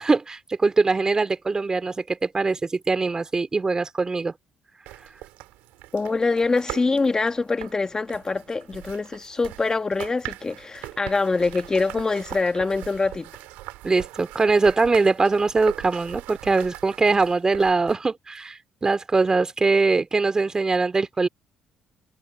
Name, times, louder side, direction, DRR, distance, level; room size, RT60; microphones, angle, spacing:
voice 1, 0.0-4.3 13.8-21.3, right 3 dB, 25° right, 2.9 m, -22 dB
sound 1, 4.9-17.9, right 19 dB, 85° right, 3.8 m, -41 dB
voice 2, 5.9-13.3, left 3 dB, 25° left, 1.6 m, -24 dB
supercardioid pair, 75°, 3 cm